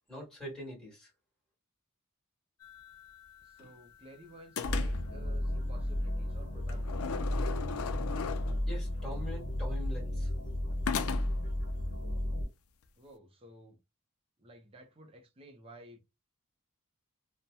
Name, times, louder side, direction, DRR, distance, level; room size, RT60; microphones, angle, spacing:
voice 1, 0.1-1.1 8.7-10.3, equal, 5° left, 1.5 m, -43 dB
sound 1, 2.6-4.1 4.6-5.2 6.7-8.8 10.9-11.5, left 6 dB, 70° left, 0.4 m, -38 dB
voice 2, 3.4-7.3 13.0-13.8 14.4-16.0, right 1 dB, 25° right, 0.5 m, -54 dB
sound 2, 4.6-12.5, left 1 dB, 55° left, 1.1 m, -33 dB
2.7 x 2.1 x 2.2 m
head